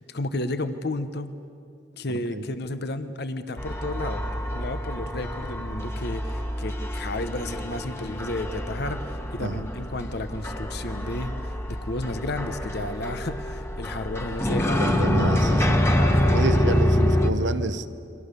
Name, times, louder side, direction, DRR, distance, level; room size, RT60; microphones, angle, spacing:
voice 1, 0.1-1.4 2.0-14.8 16.0-16.5, left 2 dB, 60° left, 10 dB, 1.1 m, -32 dB
voice 2, 2.1-2.4 9.4-9.6 14.8-15.8 16.3-17.9, right 2 dB, 75° right, 12 dB, 1.1 m, -29 dB
sound 1, 3.6-17.3, left 1 dB, 15° left, 1.5 m, -26 dB
29.5 x 24.0 x 6.9 m, 2.5 s
head